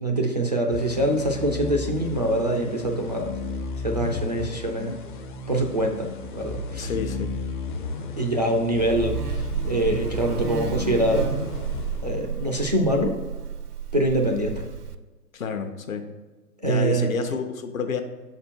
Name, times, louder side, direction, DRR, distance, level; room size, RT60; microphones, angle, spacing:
voice 1, 0.0-3.4 3.8-5.0 5.5-6.1 6.3-6.9 8.2-11.4 12.0-13.1 13.9-14.7 16.6-17.1, right 1 dB, 30° right, 0 dB, 0.3 m, -24 dB
sound 1, 0.7-12.6, left 3 dB, 30° left, 0.6 m, -34 dB
voice 2, 6.8-7.3 15.3-16.1 16.6-18.0, left 5 dB, 60° left, 6 dB, 0.9 m, -29 dB
Buzz, 8.8-15.0, right 7 dB, 75° right, 0.6 m, -32 dB
6.7 x 4.2 x 4.5 m, 1.3 s
figure-of-eight pair, 120°, 47 cm